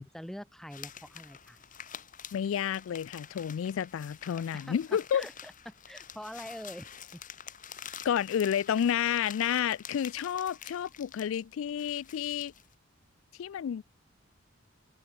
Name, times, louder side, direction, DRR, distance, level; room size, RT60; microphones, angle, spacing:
voice 1, 0.0-1.6 4.5-4.8 5.1-6.9 7.1-7.2, equal, ahead, 0.5 m, -44 dB
sound 1, 0.7-12.7, left 9 dB, 45° left, 2.3 m, -48 dB
voice 2, 2.3-5.3 8.0-12.5 13.4-13.8, left 9 dB, 90° left, 0.3 m, -30 dB
head